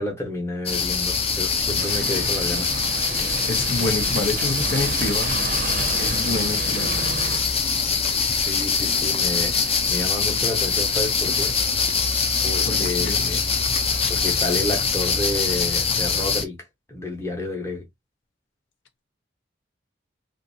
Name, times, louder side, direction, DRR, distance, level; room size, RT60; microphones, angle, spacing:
voice 1, 0.0-2.7 8.3-11.6 12.4-13.4 14.1-17.9, left 1 dB, 15° left, 0.9 m, -30 dB
sound 1, 0.7-16.4, left 5 dB, 30° left, 0.4 m, -23 dB
sound 2, 1.8-7.4, right 5 dB, 45° right, 0.5 m, -30 dB
voice 2, 3.4-5.3 6.0-7.2 12.6-13.3, left 3 dB, 80° left, 0.7 m, -28 dB
2.6 x 2.5 x 2.6 m
head